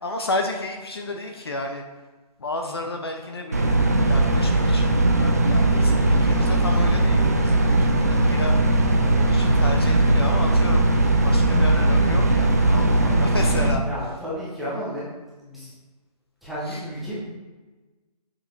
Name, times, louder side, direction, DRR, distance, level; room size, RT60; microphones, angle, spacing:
voice 1, 0.0-1.8 2.4-3.8 4.1-4.9 5.2-8.6 9.1-10.9 11.2-13.9 16.6-16.9, left 2 dB, 40° left, 3 dB, 0.6 m, -32 dB
sound 1, 3.5-13.7, right 2 dB, 25° right, 0.4 m, -19 dB
voice 2, 13.8-15.0 15.4-15.7 16.4-17.2, equal, ahead, -10 dB, 0.7 m, -32 dB
6.5 x 5.9 x 3.1 m, 1.2 s
figure-of-eight pair, 160°, 21 cm